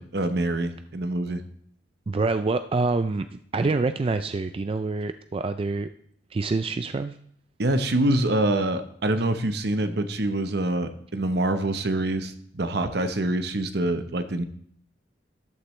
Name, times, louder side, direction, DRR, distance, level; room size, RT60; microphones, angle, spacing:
voice 1, 0.0-1.4 7.6-14.4, right 1 dB, 60° right, 9 dB, 1.0 m, -25 dB
voice 2, 2.1-5.9 6.3-7.2, right 3 dB, 30° right, 10 dB, 0.3 m, -26 dB
13.5 x 11.5 x 3.2 m, 0.66 s
head